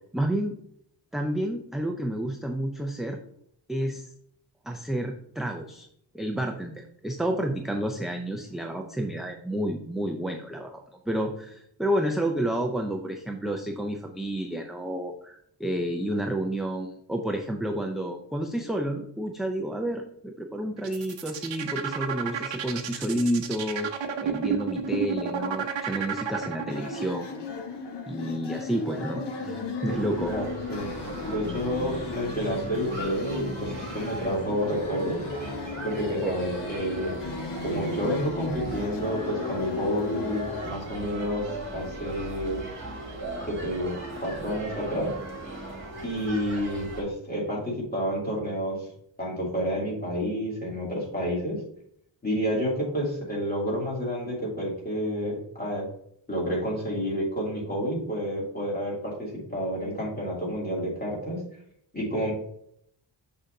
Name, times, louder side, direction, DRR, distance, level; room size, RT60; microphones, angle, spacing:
voice 1, 0.1-0.6 1.1-3.2 3.7-4.1 4.6-5.9 6.1-23.9 24.2-27.3 28.1-30.4 36.2-36.4, right 1 dB, ahead, 2 dB, 0.4 m, -30 dB
sound 1, 20.8-27.0, right 8 dB, 75° right, 0.9 m, -31 dB
sound 2, 26.7-40.7, left 3 dB, 60° left, 1.1 m, -36 dB
sound 3, 29.8-47.0, right 2 dB, 35° right, 2.7 m, -38 dB
voice 2, 30.2-30.9 31.2-35.2 35.8-37.1 37.6-42.6 43.5-43.9 44.2-45.1 46.0-48.9 49.2-51.6 52.2-55.9 56.3-61.4 61.9-62.3, equal, 20° left, -5 dB, 2.7 m, -29 dB
6.6 x 6.2 x 2.7 m, 0.69 s
wide cardioid pair, 160°, 46 cm